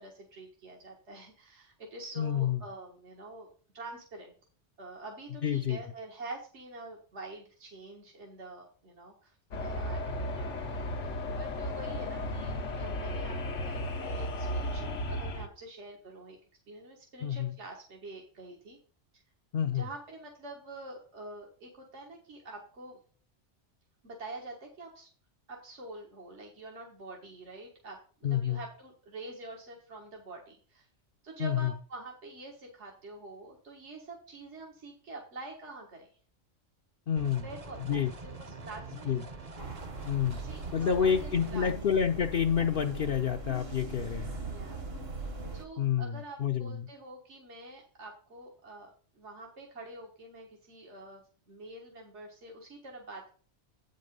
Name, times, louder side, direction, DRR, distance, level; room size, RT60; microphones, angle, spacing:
voice 1, 0.0-3.5 3.7-4.4 4.8-11.1 11.4-13.4 13.6-16.4 16.7-18.8 19.1-19.2 19.7-23.0 24.0-25.1 25.5-30.9 31.2-36.1 37.4-39.2 40.4-41.7 44.5-44.8 45.5-53.3, right 2 dB, 75° right, 0 dB, 1.8 m, -46 dB
voice 2, 2.2-2.6 5.4-5.8 17.2-17.5 19.5-19.9 28.2-28.6 31.4-31.7 37.1-37.5 37.9-38.1 39.1-39.2 40.1-40.4 40.7-44.3 45.8-46.9, left 8 dB, 60° left, 3 dB, 0.7 m, -29 dB
sound 1, 9.5-15.5, left 1 dB, 90° left, 1.3 m, -34 dB
sound 2, 37.2-41.5, right 3 dB, 35° right, 0.9 m, -45 dB
sound 3, 39.6-45.6, right 3 dB, 60° right, 1.6 m, -40 dB
8.5 x 5.3 x 5.2 m, 0.41 s
omnidirectional pair, 1.2 m